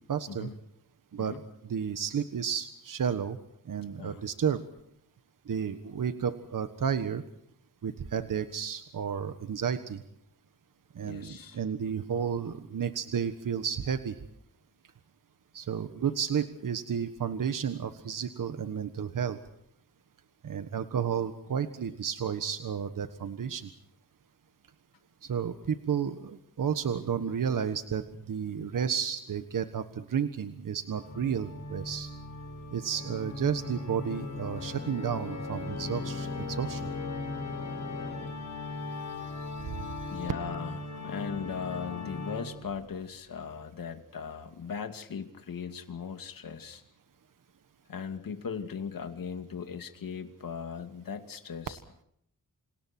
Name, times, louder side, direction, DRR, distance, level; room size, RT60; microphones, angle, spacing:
voice 1, 0.1-0.5 1.1-3.4 3.6-4.6 5.5-7.2 7.8-10.0 10.9-14.1 15.5-19.4 20.4-23.7 25.2-32.1 32.7-36.9 39.2-40.2, right 7 dB, 70° right, 9 dB, 1.5 m, -32 dB
voice 2, 11.0-11.6 40.1-46.8 47.9-51.8, left 6 dB, 75° left, 7 dB, 2.5 m, -38 dB
Organ, 31.0-42.8, left 3 dB, 55° left, 6.4 m, -38 dB
29.0 x 27.0 x 4.5 m, 0.72 s
wide cardioid pair, 170°, 34 cm